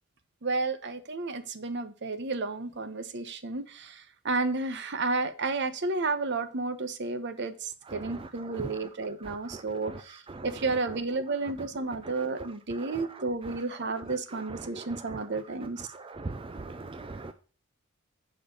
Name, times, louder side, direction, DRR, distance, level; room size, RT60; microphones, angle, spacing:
voice 1, 0.4-15.9, right 3 dB, 55° right, 1.0 m, -32 dB
voice 2, 9.3-9.6 10.4-10.5 14.7-14.9 16.1-17.3, right 3 dB, 25° right, 0.5 m, -40 dB
7.0 x 4.9 x 6.5 m
head